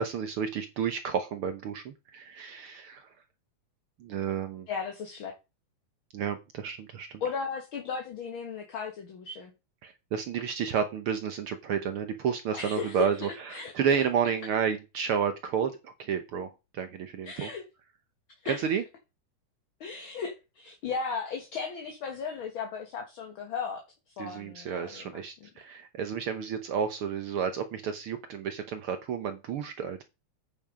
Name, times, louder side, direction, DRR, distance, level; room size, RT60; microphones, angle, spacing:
voice 1, 0.0-3.1 4.0-4.7 6.1-7.2 9.8-17.5 18.5-18.8 24.2-30.0, right 7 dB, 75° right, 1.2 m, -31 dB
voice 2, 4.7-5.3 7.2-9.5 12.5-13.1 13.5-13.7 17.2-17.6 18.4-18.7 19.8-23.8 24.2-25.2, left 5 dB, 50° left, 1.8 m, -35 dB
9.0 x 5.7 x 5.0 m
omnidirectional pair, 3.6 m